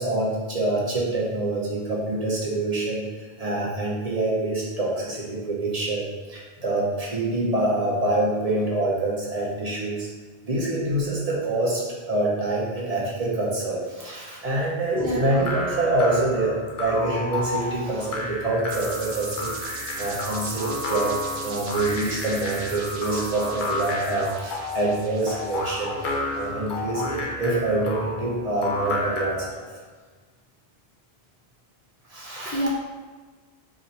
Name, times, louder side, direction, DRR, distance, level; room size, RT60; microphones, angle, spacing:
voice 1, 0.0-3.1 3.4-10.1 10.4-19.6 20.0-21.1 21.4-25.9 26.3-29.7 32.1-32.7, right 2 dB, 45° right, -5 dB, 0.7 m, -26 dB
voice 2, 14.9-15.5 32.4-32.7, equal, 15° left, -6 dB, 0.3 m, -27 dB
sound 1, 15.3-29.5, left 2 dB, 60° left, 0.7 m, -31 dB
sound 2, 18.7-26.5, right 3 dB, 80° right, 0.9 m, -39 dB
2.8 x 2.5 x 4.0 m, 1.4 s
omnidirectional pair, 1.0 m